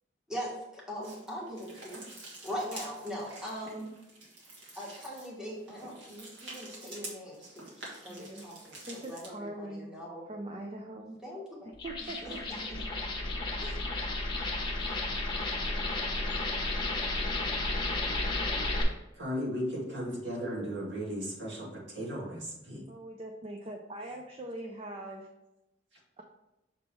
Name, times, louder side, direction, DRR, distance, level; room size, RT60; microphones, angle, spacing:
voice 1, 0.3-2.0 2.4-3.9 4.7-10.2 11.2-11.7 12.2-12.3 13.6-13.8, equal, 5° right, -5 dB, 1.5 m, -41 dB
sound 1, 1.0-9.3, right 2 dB, 85° right, 1.9 m, -48 dB
voice 2, 8.1-8.5 8.9-9.9 10.3-11.2 11.6-12.4 22.9-25.3 26.2-26.3, right 1 dB, 30° right, 2 dB, 0.5 m, -42 dB
sound 2, 11.7-18.8, left 2 dB, 25° left, 1.1 m, -32 dB
voice 3, 19.2-22.8, equal, 65° right, -4 dB, 2.0 m, -36 dB
6.5 x 3.5 x 4.4 m, 0.92 s
head